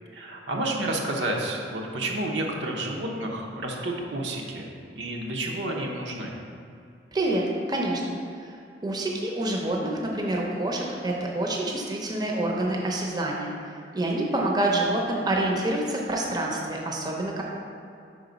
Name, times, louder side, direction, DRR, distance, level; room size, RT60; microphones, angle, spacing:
voice 1, 0.1-4.7 4.9-6.3, right 1 dB, 85° right, -1 dB, 0.8 m, -30 dB
voice 2, 7.1-8.2 8.8-13.5 13.9-17.4, right 1 dB, 25° right, -1 dB, 0.6 m, -27 dB
5.1 x 4.0 x 5.1 m, 2.5 s
head